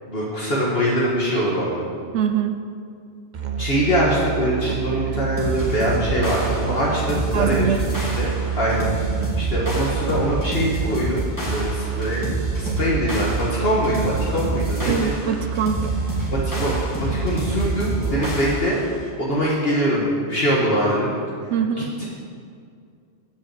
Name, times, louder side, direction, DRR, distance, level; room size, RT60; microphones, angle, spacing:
voice 1, 0.1-1.8 3.6-8.3 8.5-8.9 9.4-11.2 11.5-15.1 16.3-16.8 17.2-18.8 19.2-21.1 21.8-22.0, equal, 55° left, -6 dB, 1.8 m, -23 dB
voice 2, 2.1-2.6 7.3-7.8 14.9-15.8 21.5-21.9, right 7 dB, 75° right, 7 dB, 0.9 m, -23 dB
Musical instrument, 3.3-18.7, right 7 dB, 45° right, 0.7 m, -28 dB
sound 1, 5.4-18.9, equal, 15° left, 2.7 m, -29 dB
10.0 x 5.4 x 7.6 m, 2.2 s
omnidirectional pair, 1.2 m